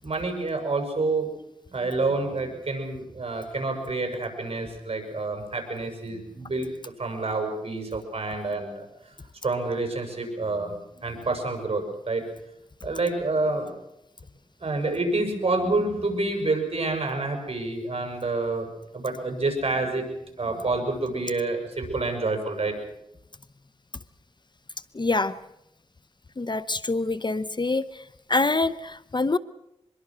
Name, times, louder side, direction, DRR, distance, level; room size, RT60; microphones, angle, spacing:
voice 1, 0.0-1.3 1.7-6.7 7.0-8.9 9.4-12.2 12.8-13.7 14.6-18.7 18.9-20.1 20.4-22.8, right 3 dB, 55° right, 4 dB, 6.8 m, -28 dB
voice 2, 24.9-25.3 26.4-27.8 28.3-29.4, left 3 dB, 40° left, 16 dB, 0.9 m, -25 dB
25.0 x 22.0 x 6.4 m, 0.84 s
cardioid pair, 55°, 12 cm